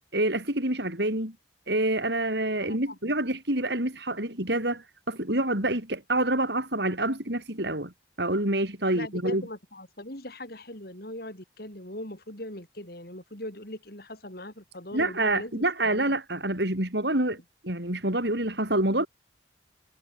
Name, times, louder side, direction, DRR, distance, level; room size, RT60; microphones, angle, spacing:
voice 1, 0.1-1.3 1.7-7.9 8.2-9.4 14.9-17.4 17.6-19.1, right 1 dB, 60° right, 6.4 m, -27 dB
voice 2, 2.6-3.0 8.9-16.1, left 1 dB, 50° left, 5.9 m, -40 dB
head